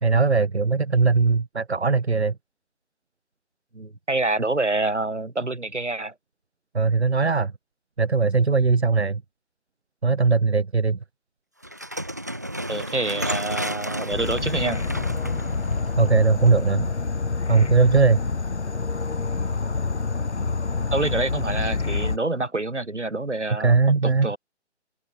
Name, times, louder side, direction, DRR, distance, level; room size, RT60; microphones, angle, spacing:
voice 1, 0.0-2.3 6.7-7.5 8.0-9.2 10.0-11.0 16.0-16.9 17.5-18.2 23.6-24.3, right 4 dB, 65° right, 2.5 m, -19 dB
voice 2, 3.7-6.1 12.7-14.8 20.9-24.4, right 2 dB, 85° right, 6.3 m, -27 dB
sound 1, 11.6-16.8, right 1 dB, 15° right, 0.5 m, -32 dB
Insect / Frog, 14.1-22.2, left 4 dB, 75° left, 2.1 m, -27 dB
figure-of-eight pair, 150°, 35 cm